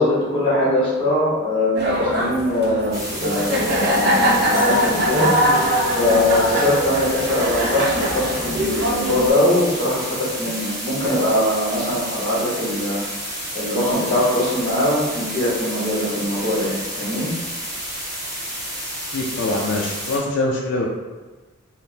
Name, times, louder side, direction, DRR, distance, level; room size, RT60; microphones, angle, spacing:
voice 1, 0.0-5.3 5.9-13.0 13.5-17.3, left 1 dB, 25° left, -8 dB, 1.0 m, -22 dB
sound 1, 1.8-9.3, equal, 50° right, 0.4 m, -21 dB
sound 2, 2.9-20.2, right 1 dB, 15° right, 0.9 m, -30 dB
voice 2, 19.1-20.9, left 2 dB, 55° left, -2 dB, 0.4 m, -23 dB
3.5 x 2.1 x 2.7 m, 1.2 s
head